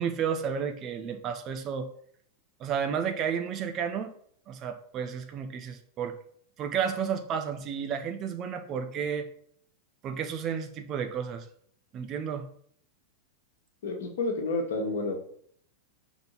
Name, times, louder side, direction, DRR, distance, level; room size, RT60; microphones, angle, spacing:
voice 1, 0.0-1.9 2.6-4.1 4.5-6.2 6.6-9.3 10.0-11.5 11.9-12.5, right 7 dB, 35° right, 7 dB, 0.7 m, -32 dB
voice 2, 13.8-15.1, left 3 dB, 60° left, 3 dB, 1.4 m, -30 dB
5.2 x 4.1 x 5.9 m, 0.62 s
figure-of-eight pair, 90°, 0 cm